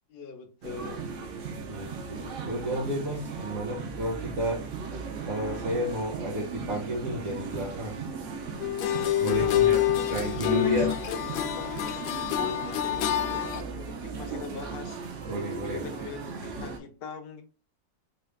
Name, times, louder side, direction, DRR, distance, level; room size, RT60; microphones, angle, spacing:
voice 1, 0.1-1.1 9.2-9.9 10.1-12.0 12.3-15.0 15.6-17.4, left 5 dB, 65° left, 0.5 m, -41 dB
sound 1, 0.6-16.8, right 5 dB, 85° right, 0.6 m, -37 dB
voice 2, 1.7-5.0 5.3-8.0 9.2-9.8 10.1-10.9 15.3-15.8, right 1 dB, 50° right, 1.0 m, -32 dB
sound 2, 8.6-13.6, left 12 dB, 90° left, 1.4 m, -27 dB
3.9 x 2.4 x 3.2 m
omnidirectional pair, 2.1 m